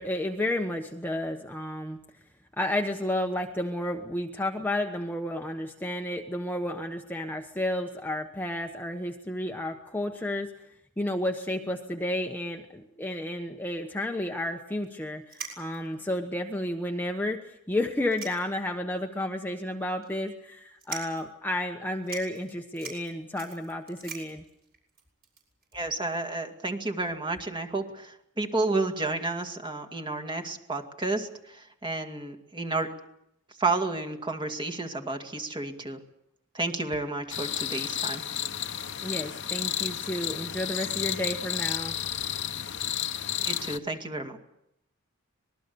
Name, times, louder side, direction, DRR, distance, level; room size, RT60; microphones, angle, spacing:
voice 1, 0.0-2.0 2.6-10.5 11.0-24.4 39.0-42.0, left 1 dB, 10° left, 3 dB, 1.1 m, -31 dB
sound 1, 14.8-14.9 15.3-16.0 16.6-16.7 17.0-17.1 17.9-18.8 19.2-19.3 20.0-20.3 20.8-21.3 21.7-21.8 22.0-25.7, right 6 dB, 45° right, 6.9 m, -42 dB
voice 2, 25.7-32.9 33.6-36.0 36.5-38.2 43.4-44.4, right 2 dB, 20° right, 4 dB, 2.1 m, -31 dB
sound 2, 37.3-43.8, left 10 dB, 55° left, 1.1 m, -32 dB
25.5 x 20.5 x 6.9 m, 0.80 s
head